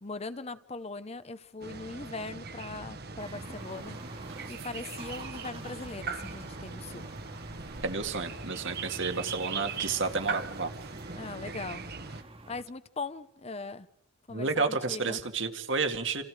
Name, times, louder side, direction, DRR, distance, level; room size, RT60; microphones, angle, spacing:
voice 1, 0.0-4.0 4.5-7.1 11.1-12.2 12.5-13.9 14.3-15.2, left 3 dB, 30° left, 0.9 m, -40 dB
sound 1, 1.6-12.2, right 4 dB, 50° right, 1.4 m, -40 dB
sound 2, 3.2-4.5 4.9-12.6, right 2 dB, 30° right, 1.8 m, -48 dB
sound 3, 3.7-11.4, right 2 dB, 80° right, 4.4 m, -52 dB
voice 2, 7.8-10.7 14.3-16.2, right 4 dB, 65° right, 2.1 m, -31 dB
29.5 x 27.0 x 4.9 m
head